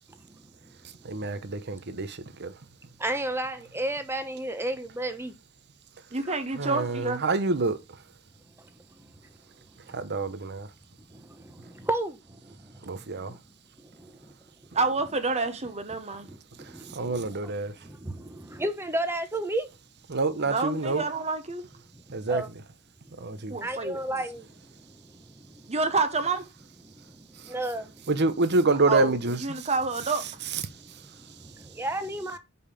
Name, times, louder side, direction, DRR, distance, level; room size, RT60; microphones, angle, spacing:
voice 1, 0.1-1.4 3.0-5.3 6.2-6.3 8.6-9.3 9.7-10.3 11.1-12.9 13.2-13.4 13.8-14.3 16.2-19.7 21.9-22.5 23.0-25.7 26.8-28.1 30.6-32.4, right 1 dB, 10° right, 1.0 m, -35 dB
voice 2, 1.0-2.5 6.6-7.8 9.9-10.7 12.9-13.3 16.9-17.7 20.1-21.0 22.1-22.4 23.2-23.6 28.1-29.7 30.5-30.6, right 3 dB, 50° right, 0.9 m, -27 dB
voice 3, 6.1-7.2 14.7-16.3 20.5-21.7 23.5-24.0 25.7-26.4 28.9-30.3, right 3 dB, 30° right, 1.2 m, -28 dB
6.7 x 5.5 x 5.2 m
head